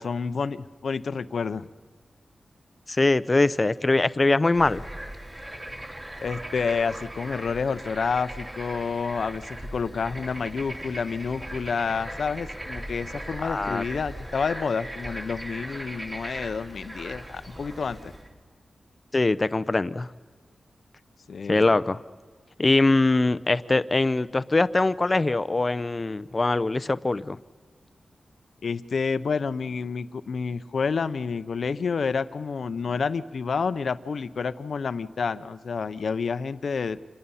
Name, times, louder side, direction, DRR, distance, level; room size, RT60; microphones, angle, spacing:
voice 1, 0.0-1.7 6.2-18.1 21.3-21.8 28.6-37.0, left 5 dB, 70° left, 13 dB, 0.7 m, -29 dB
voice 2, 2.9-4.8 13.4-13.8 19.1-20.1 21.5-22.0 22.6-27.4, left 2 dB, 25° left, 15 dB, 0.5 m, -22 dB
Bird / Frog, 4.5-18.3, right 1 dB, 25° right, 3.1 m, -39 dB
27.5 x 21.5 x 5.6 m, 1.5 s
wide cardioid pair, 150°, 0 cm